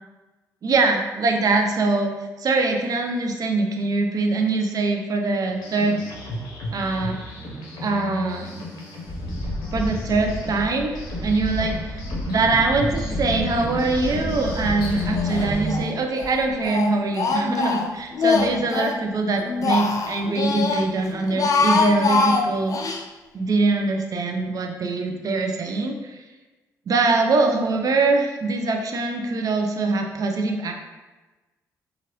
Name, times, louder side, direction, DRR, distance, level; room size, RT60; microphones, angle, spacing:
voice 1, 0.6-2.1 2.4-6.0 6.7-7.2 7.8-8.6 9.7-23.0 23.3-26.2 26.9-30.7, right 3 dB, 55° right, 3 dB, 0.5 m, -23 dB
sound 1, 5.4-15.8, left 2 dB, 70° left, 0.7 m, -33 dB
Wind, 9.0-15.9 16.2-16.7, equal, 30° left, 1.4 m, -31 dB
Speech, 15.2-15.9 16.2-19.0 19.4-20.9 21.2-23.0, left 4 dB, 50° left, 0.4 m, -23 dB
2.9 x 2.4 x 3.0 m, 1.2 s
supercardioid pair, 60°, 7 cm